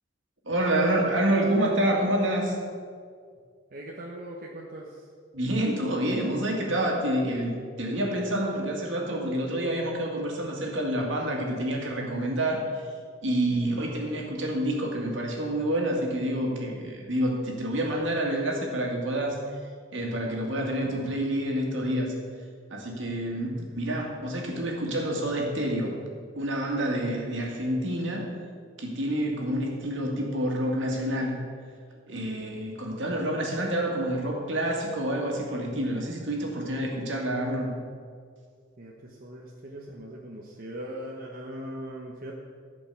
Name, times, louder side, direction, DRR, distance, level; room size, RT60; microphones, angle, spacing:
voice 1, 0.5-2.6 5.3-12.7 13.2-19.4 19.9-22.1 22.7-25.9 26.4-28.3 28.8-31.4 32.1-37.7, right 1 dB, 70° right, 0 dB, 2.1 m, -28 dB
voice 2, 3.7-5.1 13.5-13.8 23.4-23.7 38.8-42.3, right 1 dB, 50° right, -2 dB, 1.0 m, -40 dB
13.5 x 5.3 x 7.0 m, 2.1 s
head